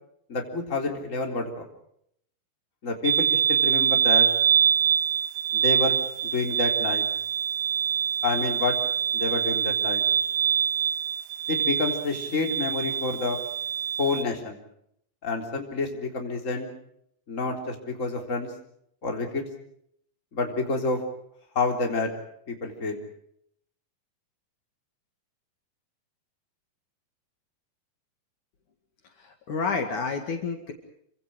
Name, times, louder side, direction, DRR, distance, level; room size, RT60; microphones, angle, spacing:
voice 1, 0.3-1.6 2.8-4.3 5.5-6.0 6.2-7.0 8.2-8.8 9.1-10.0 11.5-13.4 14.0-14.6 15.2-16.7 17.3-18.5 19.0-19.4 20.3-21.0 21.6-22.1 22.5-23.0, left 3 dB, 20° left, 2 dB, 3.9 m, -28 dB
sound 1, 3.0-14.2, right 8 dB, 80° right, 2.7 m, -25 dB
voice 2, 29.2-30.7, left 5 dB, 60° left, 4 dB, 3.4 m, -29 dB
29.0 x 25.0 x 5.1 m, 0.72 s
omnidirectional pair, 4.1 m